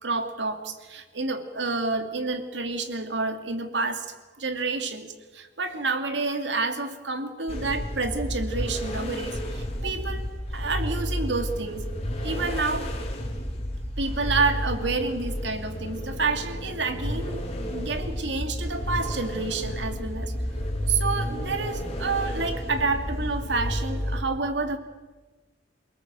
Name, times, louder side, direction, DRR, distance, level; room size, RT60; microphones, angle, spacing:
voice 1, 0.0-4.1 4.3-11.9 12.2-12.9 14.0-20.3 20.9-24.8, right 3 dB, 75° right, 7 dB, 2.5 m, -29 dB
sound 1, 7.5-24.2, equal, 35° left, 3.4 m, -31 dB
27.5 x 19.0 x 7.6 m, 1.3 s
head